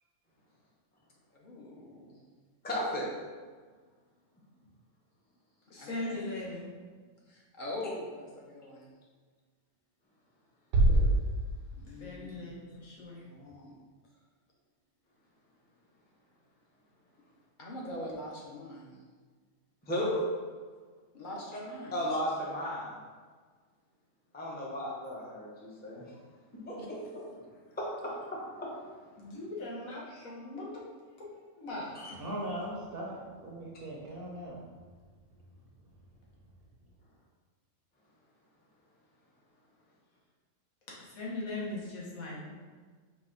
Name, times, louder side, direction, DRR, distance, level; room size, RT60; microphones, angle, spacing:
voice 1, 1.3-2.2 5.8-6.3 7.3-8.9 11.8-12.6 13.2-13.7 17.6-19.0 21.1-22.0 24.8-24.9 26.8-26.9, left 1 dB, 45° left, -3 dB, 0.8 m, -43 dB
voice 2, 2.6-3.1 10.9-11.0 19.9-20.2 21.9-23.0 24.3-26.0 26.7-27.0 27.8-28.7, equal, 10° left, -4 dB, 0.5 m, -34 dB
voice 3, 5.7-6.6 11.9-13.2 29.2-30.8 31.2-31.3 31.6-32.2 40.9-42.5, left 2 dB, 85° left, -5 dB, 1.5 m, -40 dB
sound 1, 10.7-12.7, right 1 dB, 90° right, 1.1 m, -27 dB
voice 4, 32.2-34.7, right 1 dB, 55° right, -3 dB, 0.7 m, -39 dB
4.8 x 2.3 x 3.7 m, 1.5 s
omnidirectional pair, 1.4 m